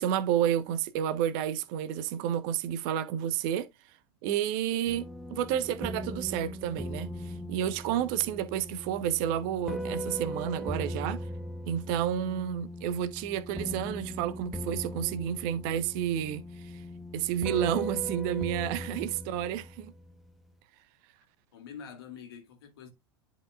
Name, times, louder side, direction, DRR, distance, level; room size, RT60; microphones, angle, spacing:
voice 1, 0.0-3.7 4.2-5.0 5.3-11.2 11.7-16.8 17.1-19.9, right 10 dB, 50° right, 1.1 m, -30 dB
sound 1, 4.9-20.3, equal, ahead, 0.9 m, -39 dB
voice 2, 18.7-19.4 21.5-22.9, left 7 dB, 65° left, 2.3 m, -47 dB
11.0 x 5.2 x 2.4 m
figure-of-eight pair, 85°, 14 cm